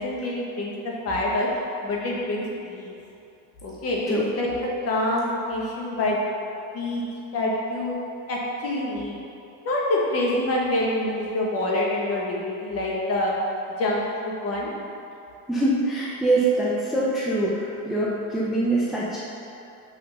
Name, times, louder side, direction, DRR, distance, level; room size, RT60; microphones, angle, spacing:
voice 1, 0.0-1.5 1.8-2.9 3.6-4.6 4.8-6.2 6.7-7.0 7.3-8.0 8.3-9.2 9.6-13.3 13.8-14.7, left 1 dB, 35° left, -3 dB, 1.2 m, -26 dB
voice 2, 15.5-19.2, right 2 dB, ahead, -6 dB, 0.4 m, -24 dB
5.8 x 3.8 x 5.4 m, 2.7 s
cardioid pair, 145°, 40 cm